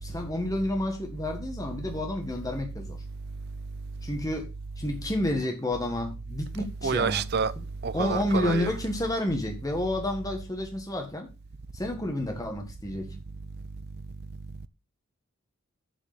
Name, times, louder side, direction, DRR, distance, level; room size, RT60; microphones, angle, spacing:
voice 1, 0.0-3.0 4.0-4.5 4.8-7.2 7.6-7.7 7.9-11.3 11.7-13.1, left 1 dB, 15° left, 1.6 m, -30 dB
voice 2, 6.8-7.5 7.8-8.7, right 5 dB, 45° right, 0.5 m, -27 dB
7.6 x 4.9 x 6.8 m
head